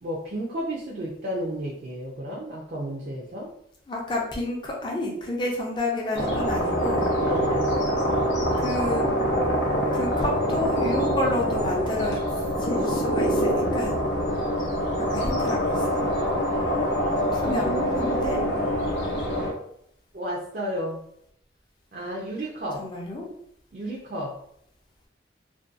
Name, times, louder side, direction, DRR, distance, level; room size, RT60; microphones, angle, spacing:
voice 1, 0.0-3.5 7.2-7.8 17.3-18.7 20.1-21.0 21.9-22.8 23.7-24.4, equal, 50° right, -3 dB, 0.4 m, -32 dB
voice 2, 3.9-7.1 8.6-9.1 9.9-12.2 12.6-14.0 15.0-16.1 17.3-18.5 22.8-23.3, left 1 dB, 25° left, -2 dB, 0.5 m, -30 dB
sound 1, 6.1-19.5, equal, 75° left, 0.6 m, -25 dB
2.5 x 2.2 x 2.4 m, 0.69 s
head